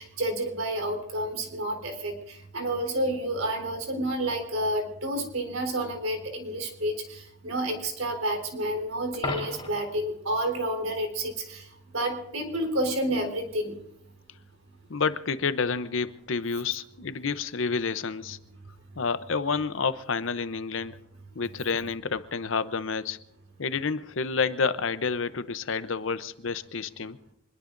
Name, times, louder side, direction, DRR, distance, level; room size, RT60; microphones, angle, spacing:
voice 1, 0.0-11.7 11.9-13.8, right 1 dB, 85° right, 3.8 m, -30 dB
Coin (dropping), 9.1-10.0 16.1-16.2, left 3 dB, 25° left, 3.7 m, -34 dB
voice 2, 14.9-18.4 19.0-21.0 21.3-23.2 23.6-27.2, left 5 dB, 65° left, 0.7 m, -29 dB
25.5 x 21.0 x 2.6 m
head